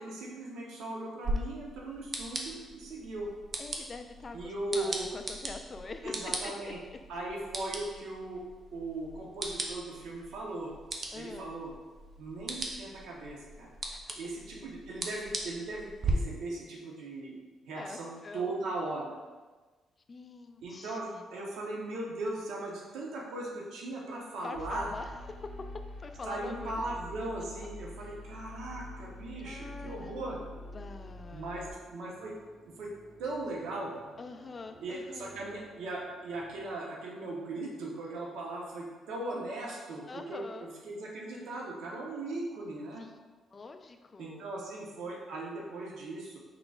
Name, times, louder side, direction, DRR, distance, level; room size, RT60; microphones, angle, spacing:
voice 1, 0.0-3.3 4.3-5.1 6.0-6.8 7.1-8.4 8.7-10.7 11.1-11.7 12.2-13.7 14.2-17.4 17.6-19.1 20.6-24.9 26.2-30.4 31.3-32.3 32.8-32.9 33.2-33.9 34.8-43.0 44.2-46.4, right 2 dB, 80° right, -2 dB, 0.9 m, -38 dB
sound 1, 1.2-16.1, right 3 dB, 45° right, 0.6 m, -40 dB
voice 2, 3.6-6.7 11.1-11.5 13.9-14.2 17.8-18.5 20.1-21.2 24.4-25.7 26.0-26.8 27.6-27.7 28.0-28.1 29.4-31.8 34.2-35.3 40.1-40.7 43.0-43.2 43.5-44.5, left 3 dB, 35° left, 6 dB, 0.4 m, -45 dB
sound 2, 24.5-31.7, left 1 dB, 70° left, 0.8 m, -45 dB
sound 3, 26.7-36.7, right 1 dB, 5° right, 0.8 m, -57 dB
4.8 x 3.9 x 2.4 m, 1.3 s
cardioid pair, 90°, 0 cm